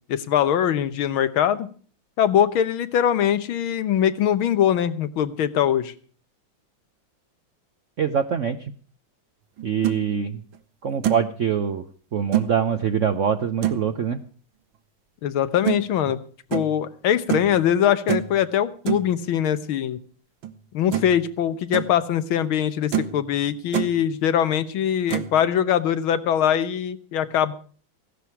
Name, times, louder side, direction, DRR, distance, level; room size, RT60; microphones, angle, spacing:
voice 1, 0.1-1.7 2.2-5.9 15.2-16.2 16.5-20.0 20.7-27.5, left 9 dB, 85° left, 13 dB, 1.9 m, -22 dB
voice 2, 8.0-8.7 9.6-10.4 10.8-11.8 12.1-14.2, right 7 dB, 60° right, 9 dB, 0.8 m, -24 dB
sound 1, 9.6-10.0 10.5-10.6 11.0-11.3 12.3-12.5 13.6-13.9 15.6-15.8 16.5-16.7 17.3-17.5 18.1-18.3 18.9-19.1 20.4-20.5 20.9-21.2 21.5-21.9 22.4-22.5 22.9-23.2 23.5-23.9 25.1-25.3, right 10 dB, 80° right, 1.9 m, -25 dB
16.0 x 12.0 x 4.6 m, 0.43 s
omnidirectional pair, 2.2 m